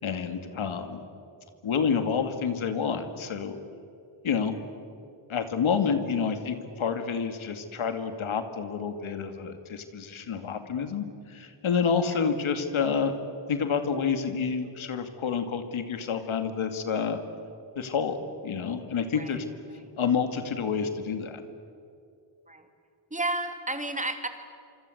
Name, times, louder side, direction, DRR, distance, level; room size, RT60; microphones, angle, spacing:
voice 1, 0.0-1.0 1.6-3.5 4.2-4.6 5.3-13.1 13.5-17.2 17.8-19.5 20.0-21.4, left 6 dB, 85° left, 8 dB, 2.4 m, -28 dB
voice 2, 23.1-24.3, right 2 dB, 15° right, 6 dB, 2.5 m, -32 dB
27.0 x 26.0 x 7.9 m, 2.5 s
wide cardioid pair, 130°, 47 cm